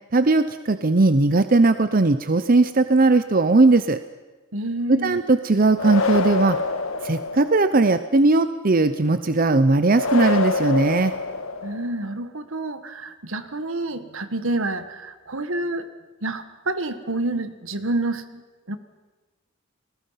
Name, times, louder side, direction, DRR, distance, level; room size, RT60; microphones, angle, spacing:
voice 1, 0.1-4.0 4.9-6.6 7.0-11.1, right 3 dB, 45° right, 11 dB, 0.7 m, -18 dB
voice 2, 4.5-5.2 11.6-15.9 16.2-18.4 18.7-18.8, right 2 dB, 75° right, 10 dB, 1.6 m, -28 dB
sound 1, 5.8-7.8 9.9-12.0, left 3 dB, 90° left, 1.5 m, -26 dB
29.5 x 20.5 x 5.8 m, 1.2 s
head